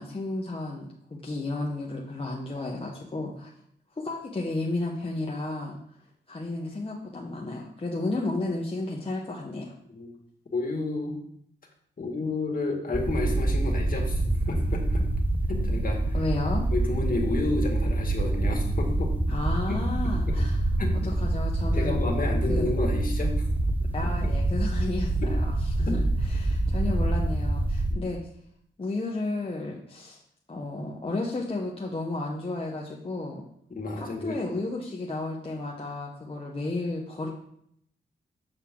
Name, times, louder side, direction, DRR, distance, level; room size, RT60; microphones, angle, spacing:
voice 1, 0.0-3.5 3.9-5.8 6.3-9.7 16.1-16.7 19.3-20.6 21.0-22.1 22.5-22.7 23.9-28.2 28.8-30.2 30.5-33.4 34.0-37.3, left 2 dB, 30° left, -2 dB, 1.0 m, -32 dB
voice 2, 10.5-11.2 12.0-15.0 15.5-16.2 16.7-19.1 19.7-19.8 20.3-20.4 20.8-20.9 21.7-23.3 25.2-25.3 25.9-26.0 27.9-28.0 33.7-34.4, left 2 dB, 50° left, 0 dB, 1.9 m, -31 dB
sound 1, 12.9-27.9, right 1 dB, 10° right, 0.6 m, -26 dB
7.2 x 6.6 x 3.7 m, 0.70 s
wide cardioid pair, 100°, 19 cm